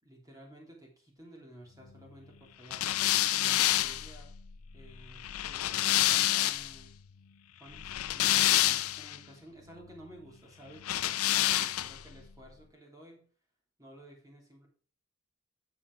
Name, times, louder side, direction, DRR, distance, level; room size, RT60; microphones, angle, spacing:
voice 1, 0.0-2.9 3.3-4.3 4.7-6.9 7.6-13.2 13.8-14.7, right 1 dB, 15° right, -1 dB, 3.2 m, -53 dB
sound 1, 2.7-6.8 7.7-9.2 10.8-12.1, left 14 dB, 85° left, 0.5 m, -28 dB
7.9 x 7.0 x 4.7 m, 0.41 s
head